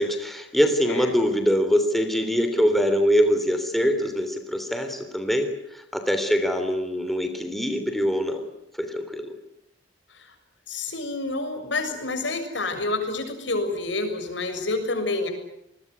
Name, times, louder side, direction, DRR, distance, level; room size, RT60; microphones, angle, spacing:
voice 1, 0.0-8.5 8.8-9.3, equal, ahead, 6 dB, 3.2 m, -23 dB
voice 2, 10.7-15.3, left 2 dB, 75° left, 7 dB, 6.8 m, -28 dB
28.5 x 21.0 x 9.5 m, 0.80 s
head